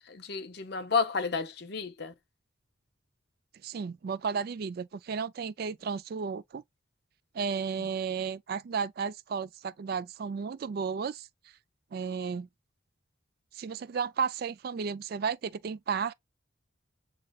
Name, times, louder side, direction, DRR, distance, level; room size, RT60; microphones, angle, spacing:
voice 1, 0.1-2.1 7.8-7.9, left 5 dB, 55° left, 0.8 m, -31 dB
voice 2, 3.6-6.6 7.3-11.3 11.9-12.5 13.5-16.1, right 6 dB, 50° right, 0.3 m, -33 dB
7.6 x 2.9 x 2.3 m
head